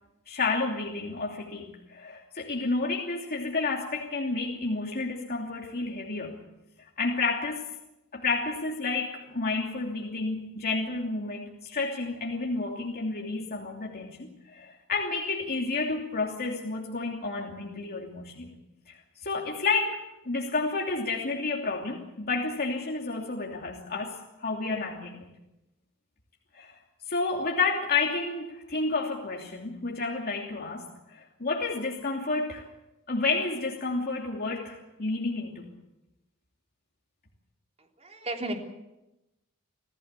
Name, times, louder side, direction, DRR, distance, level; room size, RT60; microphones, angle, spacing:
voice 1, 0.3-6.4 7.0-7.6 8.1-18.5 18.9-20.0 20.2-25.3 26.5-26.8 27.1-32.6 33.1-35.7, left 3 dB, 45° left, -1 dB, 2.9 m, -30 dB
voice 2, 38.0-38.5, right 2 dB, 30° right, 2 dB, 3.6 m, -33 dB
27.5 x 15.5 x 8.4 m, 0.95 s
head